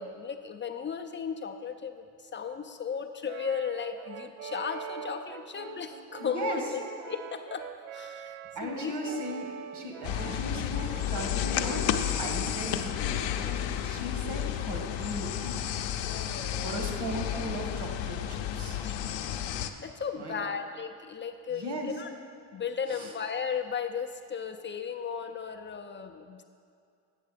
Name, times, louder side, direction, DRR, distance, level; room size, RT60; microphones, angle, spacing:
voice 1, 0.0-9.2 16.0-16.9 18.8-19.0 19.8-22.1 22.5-26.4, left 6 dB, 25° left, 6 dB, 0.4 m, -36 dB
Brass instrument, 3.3-11.8, right 8 dB, 80° right, 0.6 m, -43 dB
voice 2, 6.2-6.6 8.6-15.7 16.6-18.8 20.2-20.5 21.5-21.9 22.9-23.1, right 1 dB, 55° right, 2 dB, 2.0 m, -37 dB
sound 1, 10.0-19.7, left 10 dB, 65° left, 0.7 m, -32 dB
9.2 x 6.4 x 5.1 m, 2.4 s
supercardioid pair, 90°, 48 cm